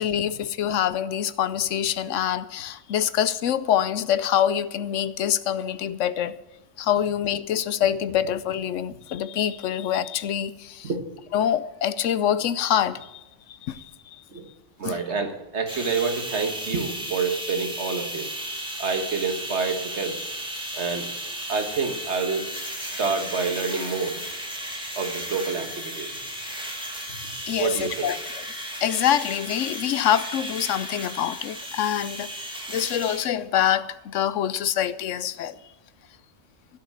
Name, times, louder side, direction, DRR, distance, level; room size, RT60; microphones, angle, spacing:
voice 1, 0.0-6.4 6.8-10.9 11.3-13.2 13.6-13.9 14.8-15.0 27.5-28.2 28.8-32.3 32.7-35.6, left 10 dB, 80° left, 1.0 m, -25 dB
voice 2, 14.8-18.3 18.8-20.2 20.8-21.1 21.5-22.5 22.8-24.2 25.0-26.2 27.6-28.1, right 5 dB, 65° right, 1.8 m, -28 dB
sound 1, 15.7-33.3, equal, 5° right, 2.1 m, -35 dB
15.5 x 6.6 x 8.6 m
omnidirectional pair, 1.3 m